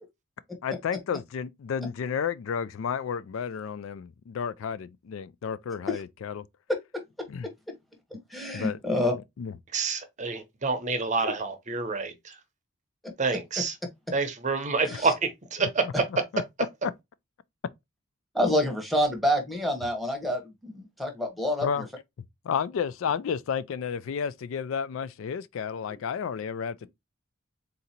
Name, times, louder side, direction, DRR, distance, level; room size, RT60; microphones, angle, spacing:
voice 1, 0.6-6.5 7.3-7.5 8.5-8.8 9.4-9.5 14.9-15.0 15.6-16.4 16.8-16.9 21.6-21.8 22.4-26.9, left 7 dB, 70° left, 0.3 m, -32 dB
voice 2, 8.3-9.1 11.2-11.3 14.8-15.1 18.3-21.9, left 1 dB, ahead, 1.0 m, -27 dB
voice 3, 9.7-12.3 13.2-13.7 14.1-15.8, right 4 dB, 35° right, 0.7 m, -28 dB
3.9 x 2.7 x 4.2 m
head